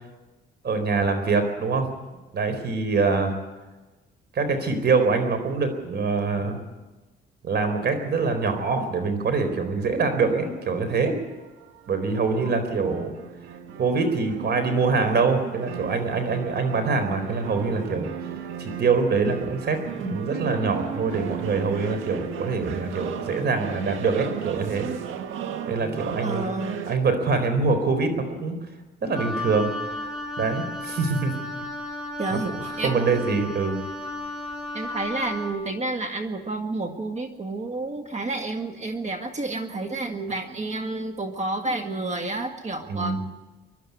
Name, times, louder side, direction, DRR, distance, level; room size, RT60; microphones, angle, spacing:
voice 1, 0.6-1.9 2.3-3.3 4.3-6.6 7.4-11.1 11.9-13.1 13.8-18.1 18.6-24.9 25.7-26.4 26.9-28.5 29.0-29.7 30.4-31.3 32.3-33.8 42.9-43.2, right 4 dB, 55° right, 8 dB, 4.2 m, -24 dB
sound 1, 10.7-27.0, right 8 dB, 85° right, 1.7 m, -35 dB
voice 2, 26.2-26.8 32.2-33.2 34.7-43.3, right 2 dB, 35° right, 5 dB, 1.9 m, -30 dB
Wind instrument woodwind instrument, 29.1-35.6, left 1 dB, 5° right, 4.8 m, -34 dB
23.5 x 12.0 x 9.6 m, 1.2 s
cardioid pair, 90°, 20 cm